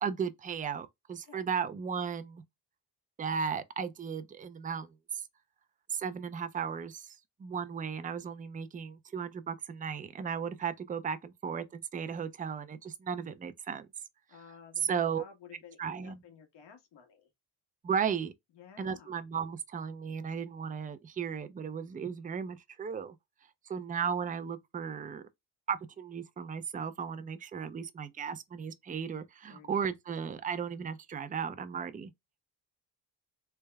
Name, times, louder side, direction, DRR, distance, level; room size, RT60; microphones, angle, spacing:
voice 1, 0.0-2.4 3.2-5.2 5.9-13.9 14.8-15.2 15.8-16.2 17.8-18.3 18.8-23.2 23.7-25.2 25.7-32.1, right 7 dB, 20° right, 0.4 m, -35 dB
voice 2, 14.3-17.3 18.5-19.2 29.5-29.8, left 6 dB, 80° left, 1.5 m, -54 dB
3.4 x 2.1 x 3.4 m
cardioid pair, 90°, 42 cm